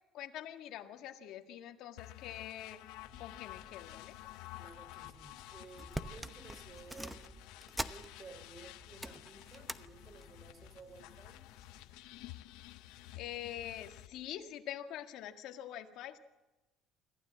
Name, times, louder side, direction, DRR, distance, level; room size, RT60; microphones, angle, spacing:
voice 1, 0.1-2.9 3.2-4.2 13.2-16.2, left 11 dB, 65° left, 6 dB, 1.8 m, -45 dB
sound 1, 2.0-14.1, left 17 dB, 85° left, 0.7 m, -52 dB
sound 2, 2.9-14.2, left 4 dB, 45° left, 4.3 m, -62 dB
voice 2, 4.6-7.4 7.9-11.5, right 4 dB, 30° right, 10 dB, 3.4 m, -55 dB
sound 3, 5.3-5.4 5.7-8.5 8.8-9.8 10.2-10.5 11.3-11.8 12.3-12.4, right 1 dB, 5° right, 0.8 m, -44 dB
26.0 x 15.0 x 7.6 m, 1.1 s
cardioid pair, 135°, 0 cm